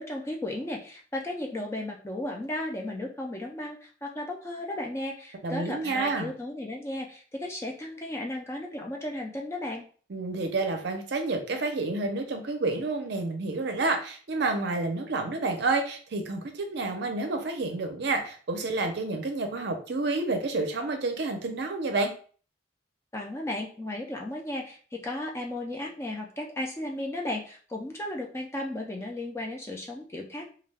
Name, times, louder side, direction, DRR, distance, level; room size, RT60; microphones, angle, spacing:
voice 1, 0.0-9.8 23.1-30.5, left 1 dB, 15° left, 0 dB, 0.3 m, -35 dB
voice 2, 5.4-6.3 10.1-22.1, right 3 dB, 55° right, 5 dB, 0.5 m, -29 dB
2.3 x 2.2 x 3.2 m, 0.42 s
head